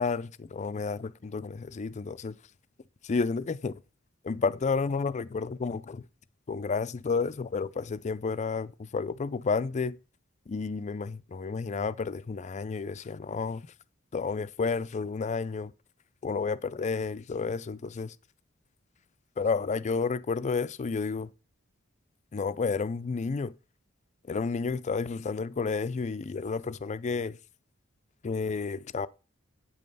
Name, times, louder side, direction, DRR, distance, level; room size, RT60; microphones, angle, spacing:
voice 1, 0.0-2.4 3.0-3.8 4.2-6.0 6.5-10.0 10.5-13.7 14.1-15.7 16.2-18.2 19.4-21.3 22.3-23.5 24.3-27.4 28.2-29.1, left 4 dB, 35° left, 0.4 m, -31 dB
8.5 x 5.3 x 5.4 m
head